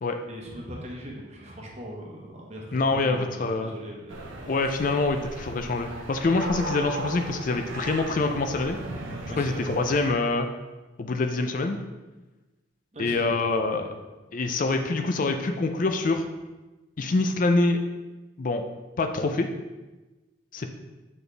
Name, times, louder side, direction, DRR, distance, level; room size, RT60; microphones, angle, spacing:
voice 1, 0.3-4.4 9.3-9.6 12.9-13.3 13.6-14.0, equal, 35° right, -1 dB, 1.0 m, -40 dB
voice 2, 2.7-3.7 4.5-8.8 9.4-10.5 11.0-11.8 13.0-13.9 14.3-16.2 17.0-17.8 18.4-18.6 19.0-19.5 20.5-20.7, left 3 dB, 40° left, 6 dB, 0.4 m, -25 dB
sound 1, 4.1-10.1, right 2 dB, 85° right, 0.9 m, -37 dB
6.8 x 4.2 x 3.3 m, 1.2 s
head